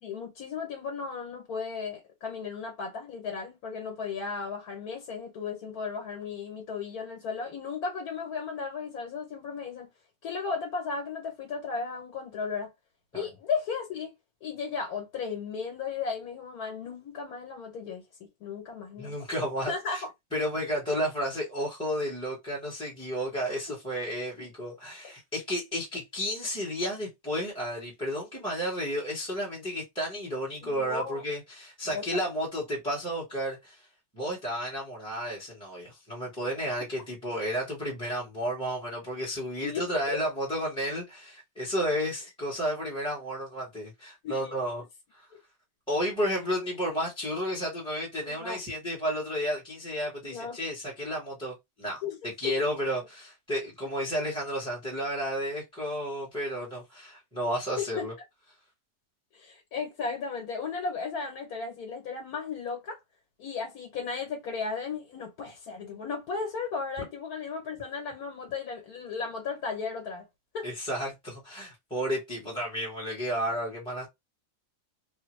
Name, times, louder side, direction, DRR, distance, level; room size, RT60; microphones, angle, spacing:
voice 1, 0.0-9.9 10.2-12.7 13.1-14.1 14.4-18.0 18.4-19.2 19.7-20.1 23.7-23.8 24.4-24.5 30.6-31.2 31.9-32.0 39.6-39.8 40.1-40.2 44.2-44.6 48.2-48.6 50.2-50.6 52.0-52.2 52.4-52.5 57.8-58.1 59.3-63.0 63.4-70.3 70.5-70.6, left 5 dB, 75° left, 1.3 m, -35 dB
voice 2, 19.0-20.0 20.3-33.9 34.1-44.8 45.1-45.3 45.9-58.1 70.6-74.1, equal, 5° left, 0.9 m, -32 dB
3.1 x 2.1 x 3.0 m
omnidirectional pair, 1.6 m